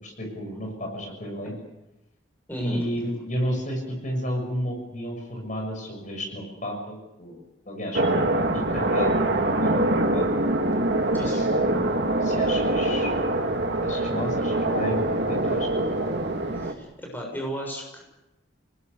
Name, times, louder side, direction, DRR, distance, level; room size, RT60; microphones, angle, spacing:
voice 1, 0.0-1.5 2.6-7.4 7.6-8.0 8.4-9.2 9.5-10.3 11.1-13.1 13.8-15.0 15.3-15.7, equal, 40° left, 2 dB, 6.6 m, -32 dB
voice 2, 2.5-2.9 11.1-11.4 16.5-18.0, equal, 10° left, 0 dB, 7.0 m, -35 dB
sound 1, 7.9-16.7, right 1 dB, 65° right, 2.4 m, -24 dB
29.0 x 20.0 x 6.9 m, 0.95 s
head